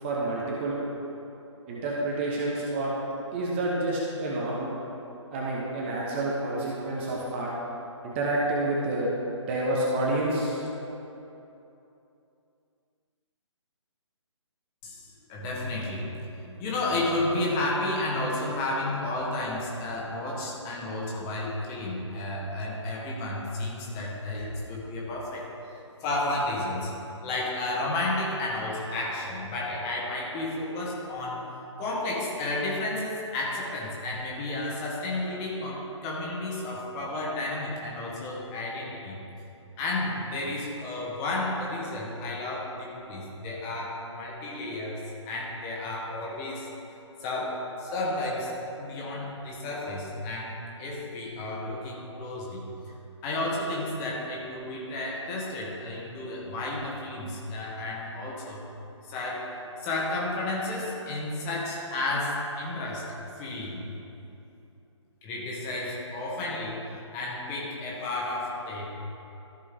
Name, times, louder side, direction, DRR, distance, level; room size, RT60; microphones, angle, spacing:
voice 1, 0.0-0.8 1.7-2.9 3.3-4.7 5.3-7.5 8.0-9.1 9.5-10.6, right 1 dB, 25° right, -4 dB, 1.0 m, -28 dB
voice 2, 14.8-16.1 16.4-25.5 26.0-26.9 27.2-31.4 31.8-39.2 39.8-45.0 45.2-46.7 47.2-48.5 48.8-52.7 53.2-58.6 59.1-63.1 63.4-63.8 65.2-68.9, left 2 dB, 20° left, -4 dB, 1.4 m, -32 dB
14.0 x 5.3 x 3.3 m, 2.9 s
figure-of-eight pair, 140°, 16 cm